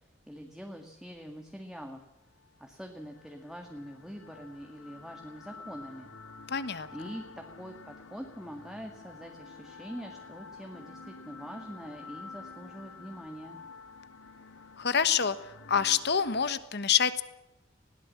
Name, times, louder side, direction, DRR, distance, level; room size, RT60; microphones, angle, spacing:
voice 1, 0.3-2.0 2.6-6.1 6.9-13.6, equal, ahead, 3 dB, 1.8 m, -44 dB
sound 1, 2.4-16.5, left 4 dB, 90° left, 1.9 m, -49 dB
voice 2, 6.5-7.1 14.8-15.3 15.7-17.2, left 7 dB, 55° left, 13 dB, 1.3 m, -27 dB
20.0 x 17.0 x 7.5 m, 0.94 s
head